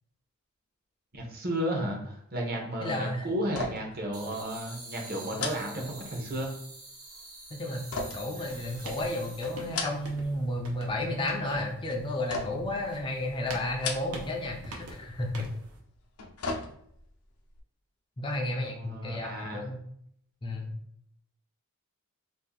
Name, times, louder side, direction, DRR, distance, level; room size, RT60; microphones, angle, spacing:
voice 1, 1.1-6.5 18.5-19.7, equal, 45° right, 1 dB, 0.8 m, -33 dB
voice 2, 2.8-3.3 5.3-5.5 7.6-15.5 18.2-19.8 20.4-20.7, left 1 dB, 20° left, 1 dB, 0.4 m, -32 dB
sound 1, 3.5-4.0 4.3-4.5 5.3-6.4 7.9-9.0 9.6-10.3 10.6-11.2 12.3-12.8 13.7-14.4 14.7-14.9 16.0-17.1 17.5-17.6, left 3 dB, 80° left, 0.5 m, -37 dB
sound 2, 4.1-9.9, right 2 dB, 70° right, 1.1 m, -46 dB
sound 3, 8.4-15.8, right 2 dB, 90° right, 0.7 m, -46 dB
2.6 x 2.5 x 3.8 m, 0.70 s
head